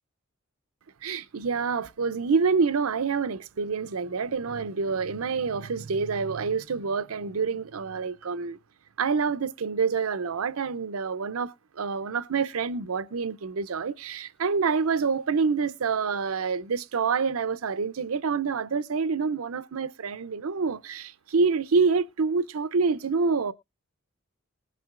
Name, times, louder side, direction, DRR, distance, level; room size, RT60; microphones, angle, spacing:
voice 1, 1.0-8.6 9.0-23.5, right 5 dB, 90° right, 0.6 m, -27 dB
20.0 x 7.6 x 2.5 m
head